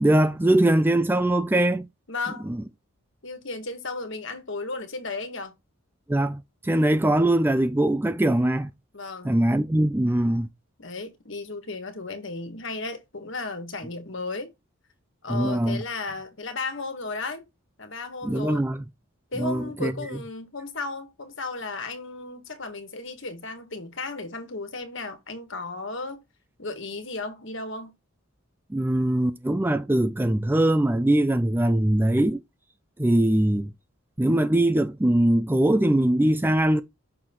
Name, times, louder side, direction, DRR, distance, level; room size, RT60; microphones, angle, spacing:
voice 1, 0.0-1.9 2.5-2.6 6.1-8.7 9.2-10.5 15.3-15.8 18.2-18.8 19.4-19.9 28.7-32.4 33.0-33.7 34.2-36.8, right 1 dB, 10° right, 0.3 m, -22 dB
voice 2, 2.1-2.5 3.2-5.6 8.9-9.3 10.8-14.5 15.2-17.5 17.8-18.7 19.3-26.2 26.6-28.0, left 3 dB, 60° left, 1.7 m, -34 dB
6.5 x 4.2 x 4.4 m
head